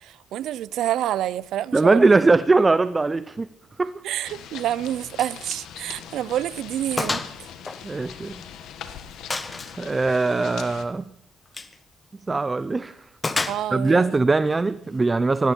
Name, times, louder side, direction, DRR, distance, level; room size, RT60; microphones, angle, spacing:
voice 1, 0.0-2.0 4.0-7.2 13.5-14.1, right 12 dB, 80° right, 0.5 m, -27 dB
voice 2, 1.7-3.5 3.8-3.9 7.8-8.4 9.8-11.0 12.3-13.0 13.7-15.5, right 3 dB, 25° right, 0.5 m, -20 dB
sound 1, 4.2-10.8, left 9 dB, 85° left, 1.7 m, -41 dB
Gunshot gunfire, 5.2-5.4 5.7-5.8 6.3-6.4 7.0-7.4 7.7-8.6 9.3-9.8 11.5-11.8 13.2-14.0, left 3 dB, 25° left, 1.3 m, -29 dB
18.0 x 17.0 x 4.5 m
cardioid pair, 90°, 0 cm